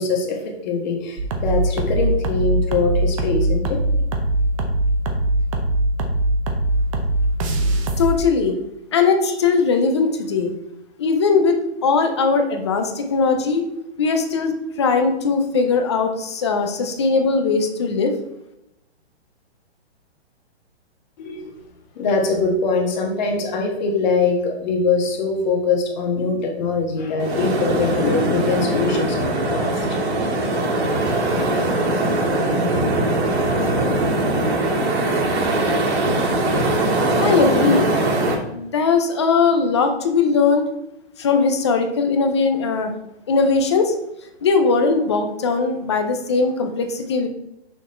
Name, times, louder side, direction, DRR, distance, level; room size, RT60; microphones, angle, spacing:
voice 1, 0.0-3.8 21.2-21.4 21.9-29.7, left 4 dB, 40° left, 1 dB, 1.5 m, -22 dB
sound 1, 1.2-8.1, right 1 dB, 30° right, 0.7 m, -21 dB
voice 2, 8.0-8.6 8.9-10.5 11.0-13.6 14.0-18.1 37.2-37.9 38.5-40.7 41.2-42.9 43.3-43.9 44.4-47.3, left 4 dB, 25° left, 6 dB, 0.4 m, -19 dB
sound 2, 27.2-38.3, right 2 dB, 75° right, 2.2 m, -21 dB
6.1 x 4.0 x 4.3 m, 0.86 s
hypercardioid pair, 160°, 33 cm